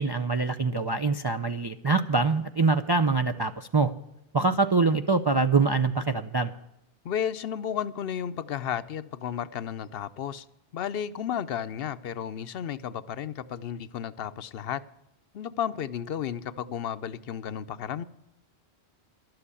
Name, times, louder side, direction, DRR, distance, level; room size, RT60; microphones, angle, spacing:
voice 1, 0.0-3.9 4.3-6.5, right 4 dB, 45° right, 0.3 m, -24 dB
voice 2, 7.0-10.5 10.7-14.8 15.3-18.0, left 9 dB, 65° left, 0.8 m, -33 dB
12.0 x 7.9 x 8.3 m
omnidirectional pair, 1.1 m